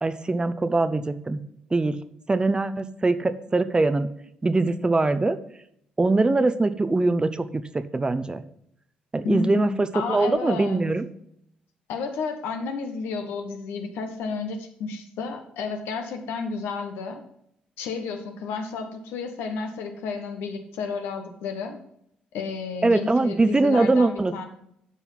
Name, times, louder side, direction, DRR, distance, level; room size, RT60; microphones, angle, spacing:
voice 1, 0.0-1.4 1.7-2.0 2.3-4.1 4.4-5.4 6.0-8.4 9.1-11.1 22.8-24.4, right 3 dB, 25° right, 13 dB, 0.7 m, -22 dB
voice 2, 9.2-10.8 11.9-17.2 17.8-21.8 22.3-24.5, left 4 dB, 75° left, 5 dB, 1.2 m, -31 dB
9.3 x 5.5 x 5.5 m, 0.73 s
hypercardioid pair, 50°, 4 cm